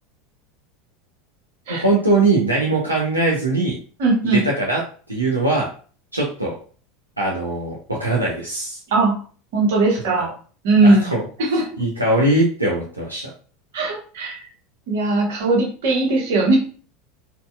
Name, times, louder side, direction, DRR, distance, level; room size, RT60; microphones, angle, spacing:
voice 1, 1.7-3.8 4.3-4.8 5.1-5.7 6.1-6.5 7.2-8.8 10.2-10.3 10.8-11.2 11.8-13.3, right 2 dB, 85° right, -4 dB, 0.6 m, -21 dB
voice 2, 4.0-4.4 8.9-9.2 9.5-10.3 10.6-11.1 11.4-11.7 13.7-14.4 14.9-16.6, right 2 dB, 60° right, -1 dB, 1.1 m, -18 dB
4.1 x 2.2 x 2.2 m, 0.40 s
figure-of-eight pair, 80°, 0 cm